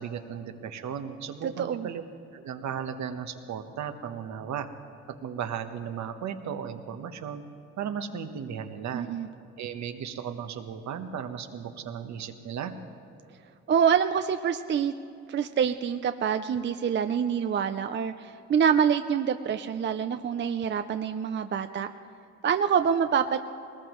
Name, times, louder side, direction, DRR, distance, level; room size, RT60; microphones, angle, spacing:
voice 1, 0.0-2.0 2.3-4.7 5.2-7.4 7.8-9.0 9.6-12.7, right 8 dB, 65° right, 8 dB, 1.1 m, -35 dB
voice 2, 1.6-1.9 8.9-9.3 13.7-14.9 15.3-21.9 22.4-23.4, right 7 dB, 40° right, 9 dB, 0.5 m, -26 dB
20.5 x 19.5 x 3.1 m, 2.6 s
cardioid pair, 90°, 30 cm